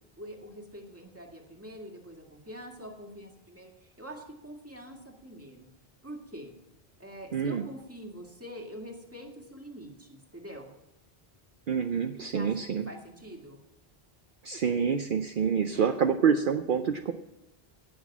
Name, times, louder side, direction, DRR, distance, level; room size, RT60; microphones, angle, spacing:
voice 1, 0.2-5.7 6.0-6.5 7.0-10.7 12.3-12.6 12.9-13.6 15.6-16.0, equal, 15° right, 1 dB, 1.9 m, -45 dB
voice 2, 7.3-7.6 11.7-12.8 14.4-17.1, right 7 dB, 60° right, 8 dB, 0.8 m, -27 dB
16.5 x 6.3 x 7.3 m, 0.91 s
omnidirectional pair, 1.0 m